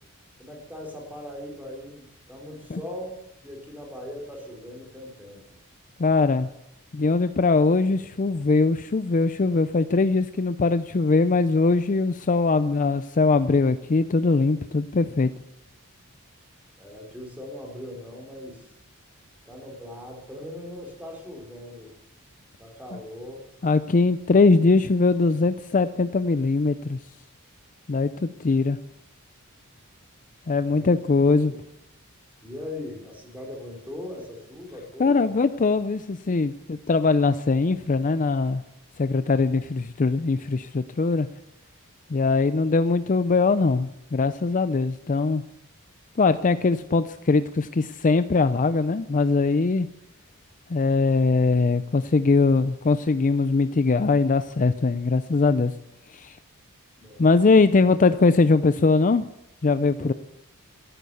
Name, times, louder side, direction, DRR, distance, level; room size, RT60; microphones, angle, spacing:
voice 1, 0.4-3.2 3.4-5.4 16.8-18.6 19.4-22.0 22.6-23.5 30.7-30.9 31.3-31.6 32.4-35.3 57.0-57.4 60.0-60.1, left 1 dB, 10° right, 0 dB, 4.2 m, -39 dB
voice 2, 6.0-6.5 6.9-15.3 23.6-27.0 27.9-28.8 30.5-31.5 35.0-38.6 39.0-41.3 42.1-45.4 46.2-49.9 50.7-55.7 56.1-56.4 57.2-59.3 59.6-60.1, left 3 dB, 35° left, 12 dB, 0.5 m, -21 dB
14.0 x 11.0 x 6.9 m, 0.80 s
head